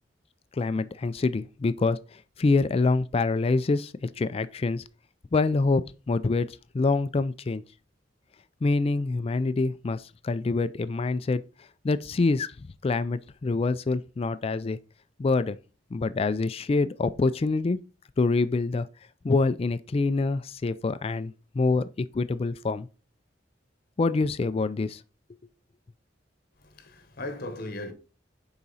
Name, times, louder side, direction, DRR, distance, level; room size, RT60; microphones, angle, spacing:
voice 1, 0.5-4.8 5.3-5.8 6.1-7.6 8.6-11.4 11.8-12.5 12.8-14.8 15.2-15.6 15.9-17.8 18.2-18.9 19.2-22.9 24.0-25.0, left 3 dB, 30° left, 0.3 m, -26 dB
voice 2, 26.6-27.9, left 2 dB, 55° left, 1.2 m, -37 dB
7.0 x 4.8 x 4.0 m
head